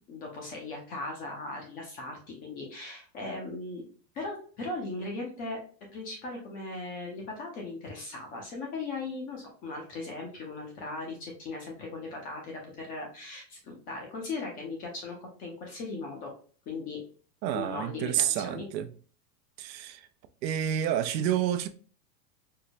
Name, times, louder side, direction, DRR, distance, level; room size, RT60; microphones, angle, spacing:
voice 1, 0.0-3.8 4.1-5.6 5.9-16.3 16.7-17.0 17.5-18.7, left 3 dB, 20° left, 0.3 m, -38 dB
voice 2, 17.4-18.9 19.6-20.0 20.4-21.7, right 10 dB, 85° right, 0.6 m, -29 dB
4.5 x 2.0 x 2.5 m
supercardioid pair, 130°, 50 cm